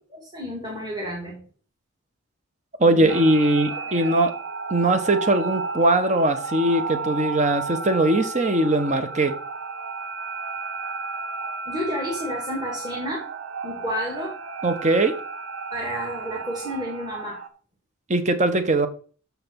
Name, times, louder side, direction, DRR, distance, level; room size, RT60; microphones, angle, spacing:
voice 1, 0.1-1.4 2.8-3.2 3.7-4.1 11.7-13.3 13.6-14.4 15.7-17.4, equal, 20° right, 2.0 m, -31 dB
voice 2, 2.8-4.3 4.7-9.3 14.6-15.1 18.1-18.9, right 2 dB, 35° right, 1.0 m, -20 dB
sound 1, 3.1-17.5, right 4 dB, 70° right, 1.0 m, -33 dB
7.1 x 5.9 x 5.8 m
head